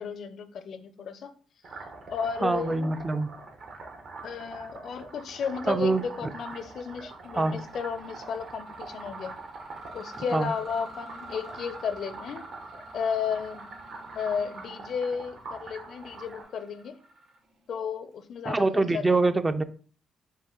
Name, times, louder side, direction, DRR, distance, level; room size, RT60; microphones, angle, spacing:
voice 1, 0.0-1.3 2.1-2.9 4.2-9.4 9.9-12.4 12.9-13.7 14.1-17.0 17.7-19.0, left 6 dB, 65° left, 10 dB, 0.5 m, -33 dB
sound 1, 1.6-16.4, right 3 dB, 60° right, 1.0 m, -44 dB
voice 2, 2.4-3.3 5.7-6.3 7.3-7.6 10.3-10.5 18.5-19.6, right 3 dB, 20° right, 10 dB, 0.3 m, -25 dB
Mechanisms, 6.4-6.7 7.1-17.7, right 2 dB, 75° right, 2.2 m, -47 dB
5.3 x 2.1 x 3.7 m, 0.43 s
cardioid pair, 90°, 0 cm